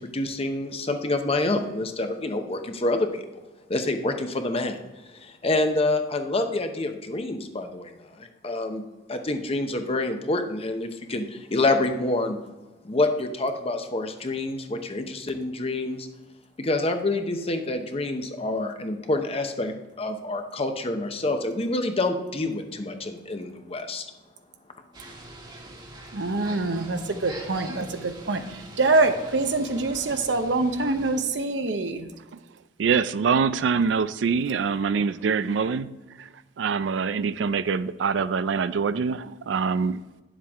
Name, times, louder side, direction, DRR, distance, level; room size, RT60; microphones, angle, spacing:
voice 1, 0.0-3.2 3.7-4.8 5.2-7.9 8.2-8.8 9.1-12.4 12.8-16.1 16.6-24.1, left 2 dB, 35° left, 6 dB, 0.8 m, -27 dB
sound 1, 24.9-31.2, right 2 dB, 25° right, 1.3 m, -43 dB
voice 2, 26.1-28.4 28.8-32.1, right 3 dB, 75° right, 7 dB, 0.8 m, -25 dB
voice 3, 32.8-35.9 36.2-36.3 36.6-40.0, right 5 dB, 90° right, 14 dB, 0.4 m, -24 dB
10.0 x 7.4 x 3.6 m, 1.1 s
head